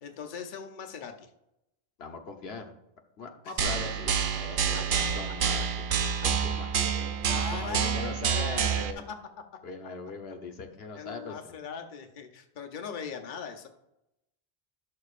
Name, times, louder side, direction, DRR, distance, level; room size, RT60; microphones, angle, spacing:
voice 1, 0.0-1.3 3.4-3.6 4.7-5.1 7.2-9.2 10.9-13.7, left 6 dB, 55° left, 4 dB, 0.8 m, -40 dB
voice 2, 2.0-2.7 3.2-5.9 6.2-9.1 9.6-11.4, left 4 dB, 80° left, 4 dB, 1.2 m, -41 dB
sound 1, 3.6-8.9, right 7 dB, 60° right, 0.7 m, -28 dB
11.5 x 6.7 x 2.4 m, 0.85 s
omnidirectional pair, 1.0 m